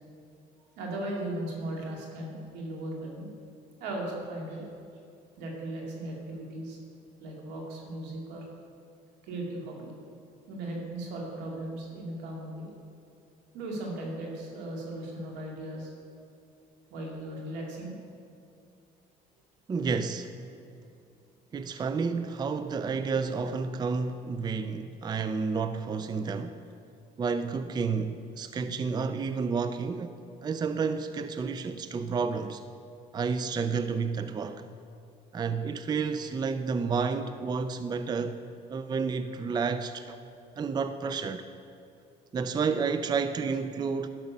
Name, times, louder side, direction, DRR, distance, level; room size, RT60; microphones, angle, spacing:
voice 1, 0.8-3.3 3.8-4.6 5.4-6.8 7.2-8.4 9.2-9.9 10.5-12.7 13.5-15.9 16.9-18.0, right 1 dB, 90° right, -1 dB, 2.2 m, -37 dB
voice 2, 19.7-20.3 21.5-26.6 27.2-30.1 30.4-32.6 33.1-34.6 35.3-38.4 38.7-40.2 40.6-41.4 42.3-44.1, right 5 dB, 25° right, 10 dB, 0.4 m, -30 dB
12.0 x 6.1 x 5.4 m, 2.5 s
cardioid pair, 110°, 17 cm